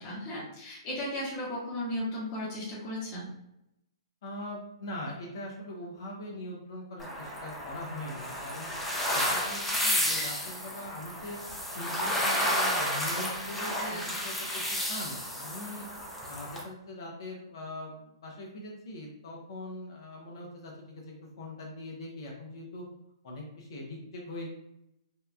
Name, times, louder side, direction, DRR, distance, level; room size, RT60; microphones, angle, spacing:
voice 1, 0.0-3.3 13.8-14.0, left 1 dB, 30° left, -8 dB, 0.9 m, -35 dB
voice 2, 4.2-8.7 9.1-11.4 11.7-14.6 14.9-15.8 16.2-22.8 23.2-24.5, left 1 dB, 60° left, -1 dB, 0.7 m, -41 dB
sound 1, 7.0-16.6, equal, 5° left, 0.5 m, -31 dB
2.8 x 2.3 x 2.2 m, 0.83 s
hypercardioid pair, 135°, 3 cm